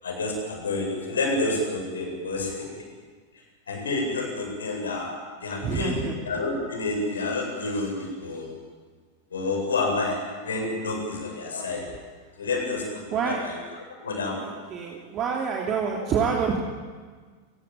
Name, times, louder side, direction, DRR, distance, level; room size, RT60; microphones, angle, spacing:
voice 1, 0.0-2.8 3.7-5.1 5.4-5.9 6.2-8.5 9.3-11.8 12.4-12.8 13.1-13.6 14.0-14.5 15.9-16.0, left 3 dB, 70° left, 1 dB, 8.0 m, -29 dB
voice 2, 5.6-6.2 13.1-13.4 14.4-16.6, right 6 dB, 30° right, 0 dB, 2.9 m, -27 dB
29.5 x 16.5 x 9.0 m, 1.5 s
figure-of-eight pair, 90°, 0 cm